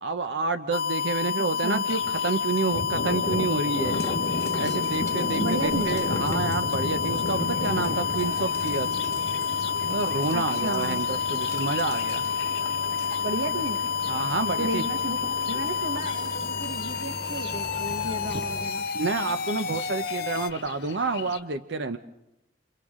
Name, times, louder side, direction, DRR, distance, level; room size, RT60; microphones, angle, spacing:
voice 1, 0.0-3.9 4.6-8.9 9.9-12.2 14.1-14.8 18.9-22.0, right 3 dB, 65° right, 9 dB, 0.7 m, -29 dB
sound 1, 0.7-20.5, left 6 dB, 50° left, 0.7 m, -29 dB
Thunder, 1.8-21.4, left 2 dB, 70° left, 1.3 m, -36 dB
sound 2, 3.9-18.7, left 1 dB, 15° left, 1.3 m, -40 dB
voice 2, 5.4-5.9 10.3-11.1 13.2-13.8 14.4-15.2 15.5-18.8, right 1 dB, 80° right, 4 dB, 1.4 m, -33 dB
29.5 x 27.5 x 3.7 m, 0.86 s
head